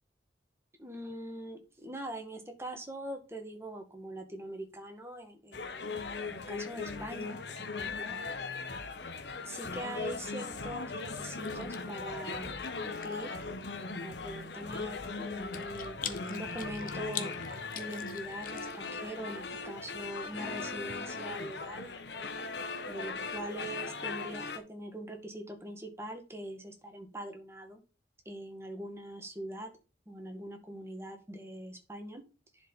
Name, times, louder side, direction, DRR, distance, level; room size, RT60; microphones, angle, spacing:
voice 1, 0.8-8.2 9.4-13.3 13.9-17.3 17.7-21.9 22.9-27.8 28.3-29.7 30.1-32.2, right 1 dB, 15° right, 4 dB, 1.8 m, -43 dB
sound 1, 5.5-24.6, left 4 dB, 80° left, 1.2 m, -39 dB
Chewing mastication, 10.7-21.0, left 9 dB, 50° left, 1.0 m, -47 dB
11.0 x 5.1 x 4.1 m, 0.32 s
head